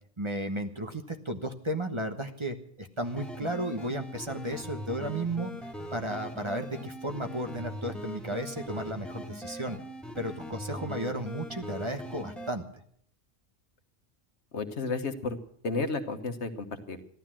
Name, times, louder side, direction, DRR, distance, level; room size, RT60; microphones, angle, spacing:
voice 1, 0.2-5.5 5.9-9.8 10.2-12.8, right 1 dB, 30° right, 6 dB, 1.1 m, -34 dB
sound 1, 3.0-12.5, equal, ahead, 1.8 m, -41 dB
voice 2, 14.5-15.4 15.6-17.0, left 3 dB, 80° left, 8 dB, 1.5 m, -32 dB
15.0 x 12.0 x 7.5 m, 0.62 s
omnidirectional pair, 1.1 m